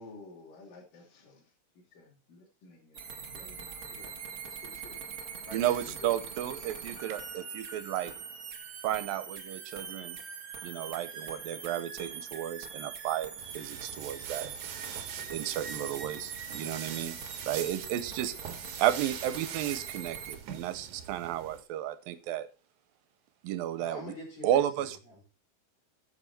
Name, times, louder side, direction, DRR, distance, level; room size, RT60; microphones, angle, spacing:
voice 1, 0.0-1.4 2.3-3.0 3.3-4.0 4.3-4.4, left 2 dB, 70° left, -1 dB, 4.6 m, -52 dB
sound 1, 2.9-20.4, right 6 dB, 45° right, 2.1 m, -42 dB
voice 2, 3.8-4.1 4.4-5.0 5.5-6.1 23.8-25.2, left 1 dB, 45° left, -3 dB, 5.8 m, -47 dB
voice 3, 5.5-8.1 8.8-10.2 10.6-14.5 15.3-17.2 17.4-18.5 18.8-22.5 23.4-24.1 24.4-25.0, right 12 dB, 85° right, 13 dB, 2.6 m, -33 dB
sound 2, 13.4-21.6, right 8 dB, 65° right, 2.7 m, -43 dB
12.0 x 8.3 x 4.2 m, 0.31 s
omnidirectional pair, 4.1 m